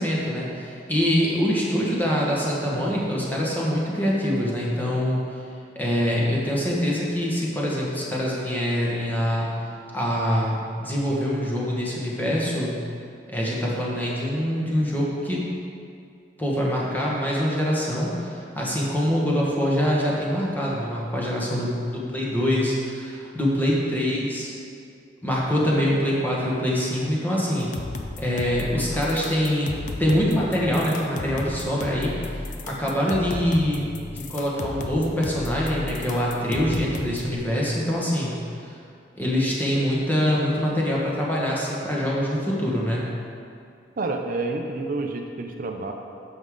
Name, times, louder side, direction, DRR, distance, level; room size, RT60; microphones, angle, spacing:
voice 1, 0.0-5.4 5.7-9.5 9.9-12.8 13.3-15.4 16.4-24.5 25.2-27.7 28.2-29.7 30.0-38.4 38.6-38.7 39.2-43.0, equal, 10° left, -5 dB, 1.3 m, -24 dB
sound 1, 27.6-37.3, left 2 dB, 45° left, 0.5 m, -35 dB
voice 2, 44.0-45.9, right 3 dB, 50° right, 3 dB, 0.5 m, -29 dB
9.2 x 6.4 x 3.7 m, 2.4 s
head